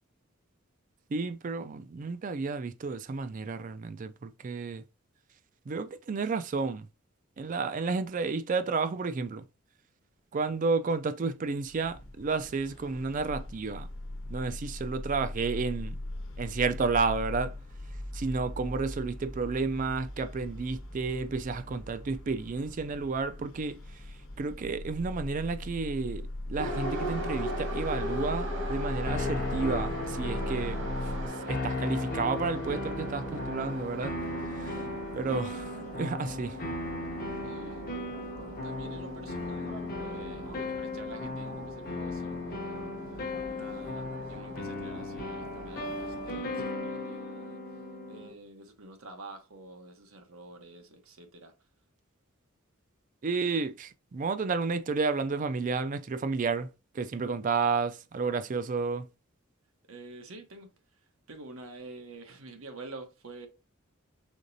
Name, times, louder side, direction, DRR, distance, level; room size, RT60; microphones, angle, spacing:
voice 1, 1.1-4.8 5.7-6.9 7.4-9.4 10.3-13.9 14.3-16.0 16.4-17.5 18.1-23.8 24.4-30.8 31.5-34.2 34.6-34.7 35.1-36.5 53.2-56.7 56.9-59.1, right 4 dB, 40° right, 0.4 m, -31 dB
sound 1, 11.6-31.3, left 1 dB, 70° left, 1.0 m, -39 dB
Subway metro underground, 26.6-46.4, right 1 dB, 60° right, 1.3 m, -40 dB
sound 2, 29.1-48.3, left 2 dB, 45° left, 0.8 m, -36 dB
voice 2, 37.4-37.9 38.6-47.6 48.1-51.5 59.9-60.7 61.3-63.5, right 2 dB, 85° right, 1.0 m, -48 dB
5.1 x 3.9 x 2.6 m
head